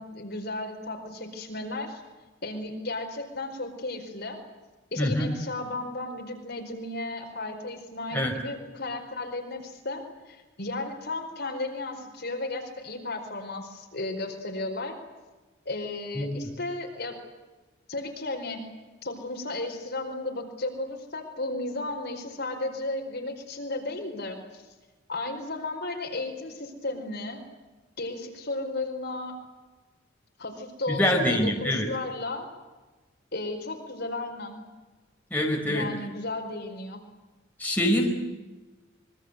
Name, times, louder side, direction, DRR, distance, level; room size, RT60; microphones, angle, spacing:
voice 1, 0.0-2.0 2.4-4.4 4.9-15.0 15.6-17.2 17.9-18.6 19.0-24.7 25.1-27.4 28.0-29.4 30.4-32.5 33.3-34.6 35.7-37.0, left 2 dB, 55° left, 3 dB, 4.7 m, -34 dB
voice 2, 5.0-5.3 8.1-8.3 16.1-16.4 30.9-31.9 35.3-35.8 37.6-38.1, left 1 dB, 10° left, 0 dB, 4.8 m, -25 dB
26.0 x 23.5 x 8.2 m, 1.2 s
head